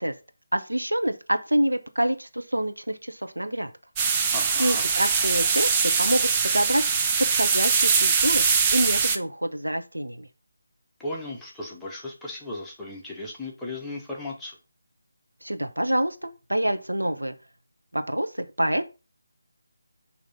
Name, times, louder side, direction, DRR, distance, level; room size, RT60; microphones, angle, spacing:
voice 1, 0.5-3.7 4.1-4.3 4.6-6.8 7.3-8.4 8.7-10.3 15.4-17.3 17.9-18.9, right 1 dB, 80° right, 8 dB, 0.8 m, -26 dB
sound 1, 4.0-9.2, right 5 dB, 15° right, 0.5 m, -22 dB
voice 2, 4.3-4.9 11.0-14.6, left 2 dB, 5° left, -5 dB, 0.9 m, -36 dB
6.4 x 2.9 x 5.4 m, 0.30 s
figure-of-eight pair, 155°, 0 cm